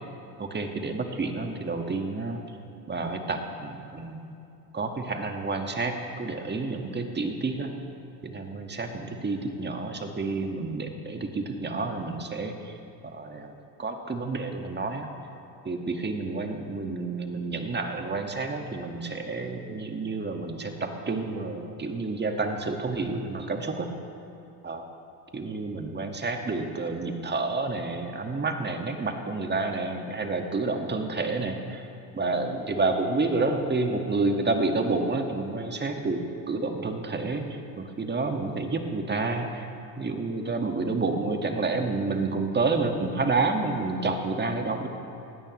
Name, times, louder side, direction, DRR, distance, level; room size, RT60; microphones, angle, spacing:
voice 1, 0.4-2.4 2.9-4.3 4.7-7.7 8.2-12.7 13.1-13.5 13.8-15.1 15.6-23.9 24.6-24.9 25.3-31.8 32.1-37.4 37.8-39.7 40.0-44.9, right 3 dB, 20° right, 4 dB, 1.7 m, -29 dB
20.0 x 16.5 x 3.1 m, 2.8 s
hypercardioid pair, 75°, 47 cm